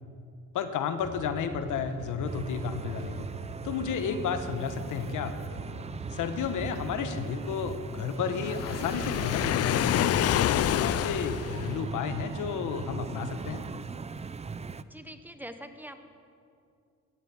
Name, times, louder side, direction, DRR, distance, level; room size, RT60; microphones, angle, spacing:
voice 1, 0.5-3.3 3.6-5.3 6.1-13.6, left 6 dB, 85° left, 9 dB, 1.2 m, -32 dB
sound 1, 1.0-12.9, right 2 dB, 70° right, 3.7 m, -42 dB
sound 2, 2.2-14.8, right 5 dB, 20° right, 0.5 m, -40 dB
Waves surf, 8.4-11.9, left 12 dB, 55° left, 0.4 m, -27 dB
voice 2, 14.9-16.1, equal, 5° right, 8 dB, 1.1 m, -44 dB
16.5 x 12.0 x 7.0 m, 2.4 s
cardioid pair, 90°, 30 cm